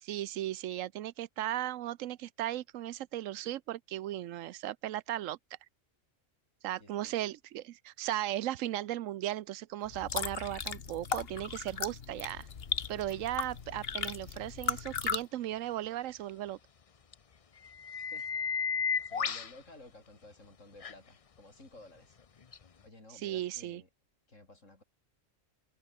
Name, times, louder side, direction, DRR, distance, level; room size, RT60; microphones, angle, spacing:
voice 1, 0.0-5.4 6.6-12.5 12.9-16.6 23.1-23.8, right 13 dB, 90° right, 1.0 m, -36 dB
voice 2, 6.8-7.2 18.1-18.3 19.1-22.2 22.8-23.9 24.3-24.8, left 2 dB, 80° left, 6.3 m, -54 dB
sound 1, 9.9-15.2, left 6 dB, 50° left, 1.4 m, -37 dB
sound 2, 13.1-13.2 17.1-17.2 17.6-19.5 20.8-20.9 22.5-22.6, left 6 dB, 35° left, 0.6 m, -33 dB
omnidirectional pair, 1.3 m